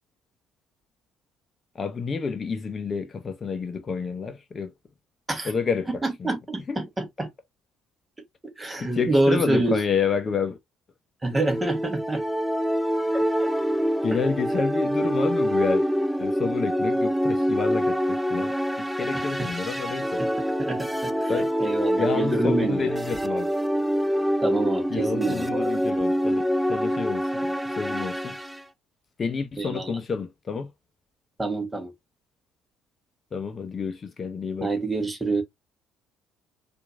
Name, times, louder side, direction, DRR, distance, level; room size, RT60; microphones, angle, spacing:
voice 1, 1.7-4.7 5.4-6.3 6.7-6.8 8.8-10.6 14.0-15.9 16.2-18.5 19.0-20.2 21.3-21.5 22.0-23.5 24.9-28.4 29.2-30.7 33.3-34.7, left 5 dB, 35° left, 0.6 m, -29 dB
voice 2, 6.0-7.3 8.6-9.8 11.2-12.2 13.1-13.5 19.1-19.5 20.2-20.3 20.6-21.3 21.6-22.9 24.4-25.7 29.6-30.0 31.4-31.9 34.6-35.4, right 2 dB, 20° right, 1.2 m, -27 dB
sound 1, 11.3-28.6, equal, ahead, 0.4 m, -26 dB
4.4 x 2.5 x 2.5 m
figure-of-eight pair, 55°, 0 cm